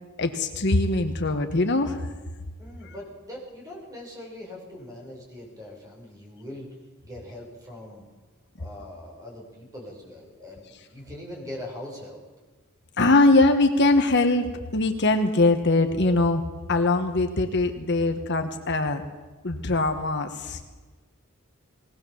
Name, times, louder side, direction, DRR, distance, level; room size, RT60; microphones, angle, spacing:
voice 1, 0.2-2.0 13.0-14.5 14.7-16.4 16.7-19.0 19.4-20.6, left 2 dB, 55° left, 6 dB, 1.4 m, -22 dB
voice 2, 2.6-6.8 7.0-8.1 8.6-12.2, left 1 dB, 15° right, -1 dB, 6.2 m, -41 dB
20.5 x 18.5 x 7.2 m, 1.3 s
head